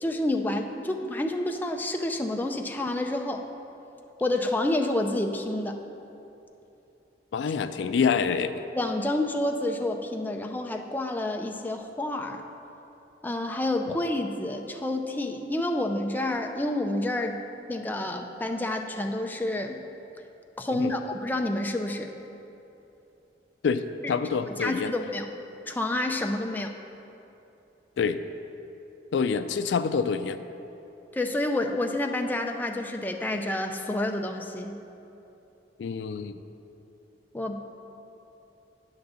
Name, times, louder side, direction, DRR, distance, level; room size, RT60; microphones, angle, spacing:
voice 1, 0.0-3.5 4.2-5.8 8.7-12.5 13.2-17.4 17.7-19.8 20.6-22.1 24.0-24.1 24.6-25.3 25.7-26.7 31.1-34.8 37.3-37.6, left 1 dB, 10° left, 3 dB, 0.4 m, -29 dB
voice 2, 7.3-8.6 13.9-14.0 20.7-20.9 23.6-23.8 24.1-24.9 28.0-28.2 29.1-30.4 35.8-36.4, left 6 dB, 75° left, 10 dB, 0.4 m, -26 dB
9.1 x 4.0 x 6.9 m, 2.9 s
head